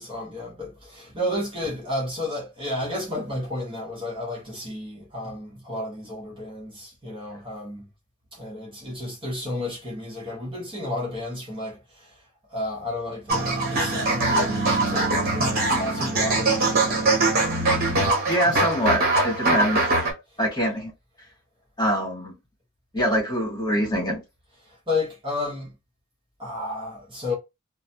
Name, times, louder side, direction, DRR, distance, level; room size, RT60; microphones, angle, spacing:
voice 1, 0.0-7.9 8.3-12.2 12.5-17.4 18.4-18.7 19.5-19.6 24.7-25.7 26.4-27.3, left 1 dB, 25° right, 0.9 m, -32 dB
sound 1, 13.3-20.1, right 2 dB, 45° right, 1.1 m, -22 dB
voice 2, 18.2-19.9 20.4-20.9 21.8-22.3 22.9-24.2, equal, 20° left, 1.5 m, -24 dB
3.1 x 2.1 x 2.7 m
head